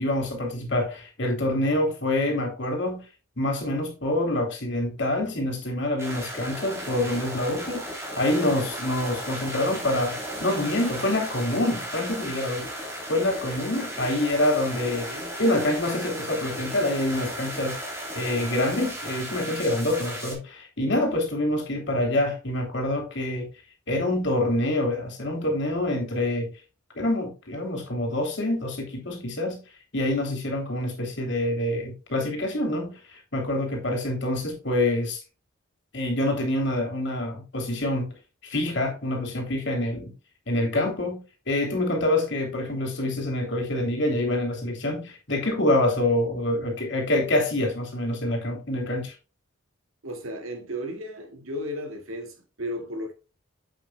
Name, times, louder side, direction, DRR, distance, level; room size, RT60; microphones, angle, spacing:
voice 1, 0.0-3.0 3.4-7.8 8.2-12.7 13.1-15.1 15.4-17.8 18.1-23.5 23.9-26.5 27.0-29.6 29.9-33.0 33.3-35.2 35.9-38.1 38.4-40.1 40.5-49.1, left 1 dB, 60° left, 3.0 m, -26 dB
sound 1, 6.0-20.3, equal, 15° right, 3.1 m, -35 dB
voice 2, 15.0-15.3 50.0-53.1, equal, 85° right, 2.2 m, -34 dB
8.5 x 7.8 x 2.2 m
head